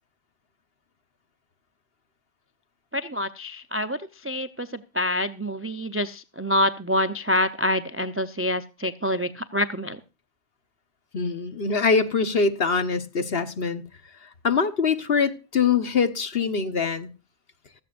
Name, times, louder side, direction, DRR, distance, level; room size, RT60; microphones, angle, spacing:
voice 1, 2.9-10.0, left 1 dB, 15° right, 0.4 m, -26 dB
voice 2, 11.1-13.8 14.2-17.1, left 5 dB, 55° left, 1.4 m, -24 dB
16.5 x 13.5 x 2.5 m
omnidirectional pair, 1.2 m